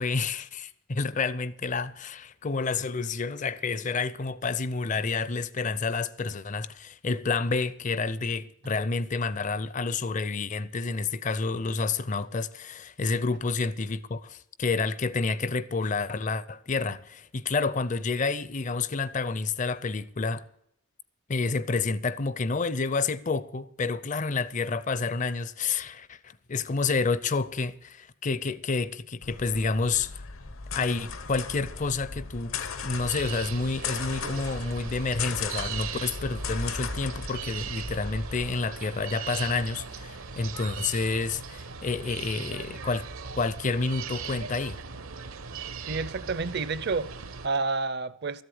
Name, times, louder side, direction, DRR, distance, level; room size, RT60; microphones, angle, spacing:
voice 1, 0.0-20.4 21.3-30.2 30.7-43.1 43.4-44.8, left 4 dB, 35° left, 0.5 m, -29 dB
sound 1, 29.2-38.5, left 5 dB, 75° left, 0.9 m, -37 dB
sound 2, 32.9-47.5, right 5 dB, 75° right, 1.0 m, -39 dB
voice 2, 45.9-48.4, right 4 dB, 50° right, 0.6 m, -30 dB
13.5 x 8.0 x 7.8 m
head